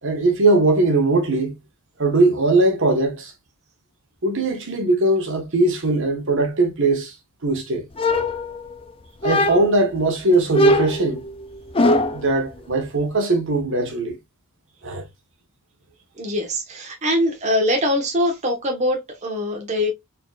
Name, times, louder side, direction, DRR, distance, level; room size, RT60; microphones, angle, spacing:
voice 1, 0.0-1.5 2.0-3.3 4.2-7.2 7.4-7.9 9.2-11.3 12.1-14.2 14.8-15.0, right 2 dB, 60° right, 1.3 m, -20 dB
sound 1, 8.0-8.8 9.2-9.9 10.5-12.3, left 1 dB, 25° left, 0.4 m, -20 dB
voice 2, 16.2-19.9, left 1 dB, 30° right, 1.1 m, -22 dB
4.2 x 4.0 x 2.4 m
head